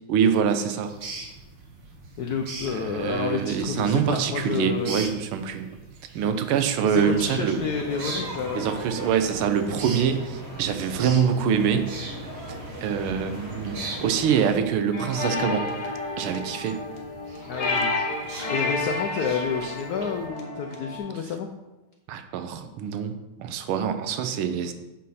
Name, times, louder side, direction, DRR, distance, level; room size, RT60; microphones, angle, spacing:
voice 1, 0.1-0.9 2.7-5.8 6.1-7.6 8.5-11.9 12.5-15.7 16.2-16.8 22.1-23.1 23.4-24.7, right 7 dB, 85° right, 9 dB, 1.6 m, -25 dB
sound 1, 0.8-20.3, right 3 dB, 60° right, 1.9 m, -42 dB
voice 2, 2.2-5.0 6.8-8.7 17.5-21.5, left 5 dB, 70° left, 3 dB, 0.9 m, -30 dB
sound 2, 6.9-14.5, right 1 dB, 30° right, 1.8 m, -38 dB
sound 3, 14.9-21.0, left 3 dB, 40° left, 1.4 m, -30 dB
8.2 x 6.4 x 4.2 m, 1.0 s
omnidirectional pair, 2.3 m